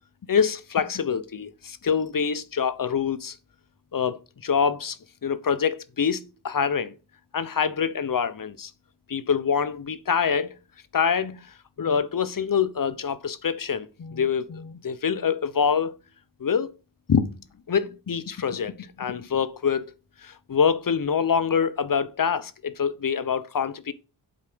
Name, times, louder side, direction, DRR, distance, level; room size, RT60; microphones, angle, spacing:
voice 1, 0.3-3.4 3.9-6.9 7.3-8.7 9.1-10.5 10.9-11.5 11.8-15.9 16.4-16.7 17.1-17.4 17.7-19.9 20.2-23.9, left 6 dB, 50° left, 1.0 m, -25 dB
8.1 x 4.8 x 6.2 m
cardioid pair, 60°, 44 cm